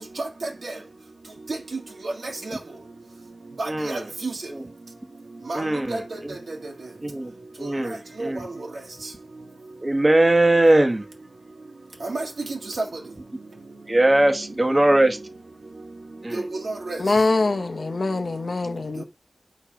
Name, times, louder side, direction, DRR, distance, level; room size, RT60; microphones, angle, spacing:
voice 1, 0.2-0.7 2.0-2.1 2.5-2.6 3.6-4.0 5.5-5.6 5.9-6.0 8.2-8.3 12.0-12.3 16.3-17.0, right 2 dB, 85° right, 1.7 m, -30 dB
voice 2, 3.7-4.0 4.5-4.6 5.5-6.3 7.0-7.3 7.6-8.5 9.8-11.0 13.9-15.2 16.2-16.4, right 1 dB, 30° right, 1.0 m, -20 dB
voice 3, 17.0-19.0, left 3 dB, 65° left, 0.8 m, -23 dB
5.1 x 4.2 x 5.1 m
wide cardioid pair, 75°, 0 cm